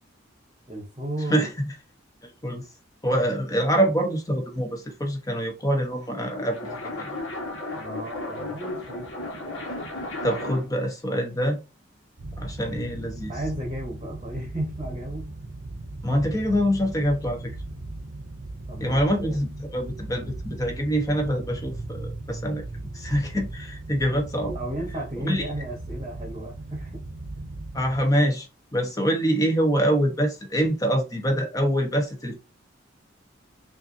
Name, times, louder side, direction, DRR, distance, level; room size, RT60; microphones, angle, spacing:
voice 1, 0.7-1.5 3.1-3.2 7.7-9.1 13.3-15.3 18.7-19.4 24.4-27.0 27.5-27.6, right 1 dB, 25° right, 1.1 m, -34 dB
voice 2, 1.3-1.7 2.2-2.6 3.0-7.1 10.2-11.6 12.4-13.3 16.0-17.5 18.8-22.6 22.9-24.6 25.2-25.4 27.7-28.5 28.7-32.3, equal, 15° left, 0.9 m, -25 dB
sound 1, 5.9-10.8, left 2 dB, 65° left, 1.3 m, -34 dB
sound 2, 12.2-28.0, right 2 dB, 50° right, 0.6 m, -37 dB
5.5 x 2.6 x 2.7 m
head